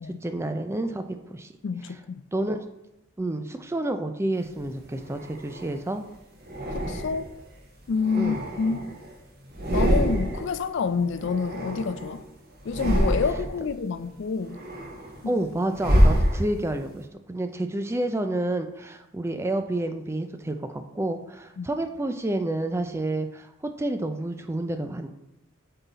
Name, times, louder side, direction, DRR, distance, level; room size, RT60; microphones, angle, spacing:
voice 1, 0.2-1.5 2.3-2.6 3.2-6.0 8.2-8.4 15.3-23.5 23.8-25.1, right 1 dB, 15° right, 0.4 m, -29 dB
voice 2, 1.6-2.2 6.7-7.3 7.9-8.8 9.7-12.2 12.6-14.6 15.2-15.4 21.6-21.7, left 5 dB, 60° left, 0.4 m, -28 dB
sound 1, 4.6-5.8 6.5-7.4 7.9-9.1 9.5-10.6 10.8-12.2 12.6-13.6 14.1-16.9, equal, 45° right, 1.4 m, -26 dB
8.1 x 3.8 x 4.0 m
head